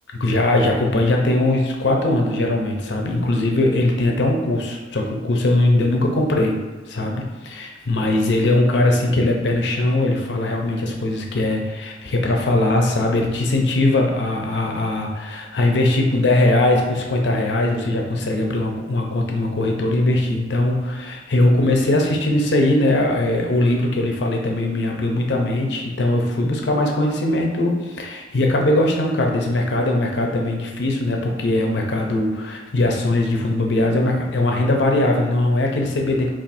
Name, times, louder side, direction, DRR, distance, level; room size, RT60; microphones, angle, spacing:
voice 1, 0.1-6.6 6.9-36.3, left 1 dB, 75° left, 1 dB, 0.6 m, -20 dB
4.0 x 2.5 x 2.6 m, 1.3 s
head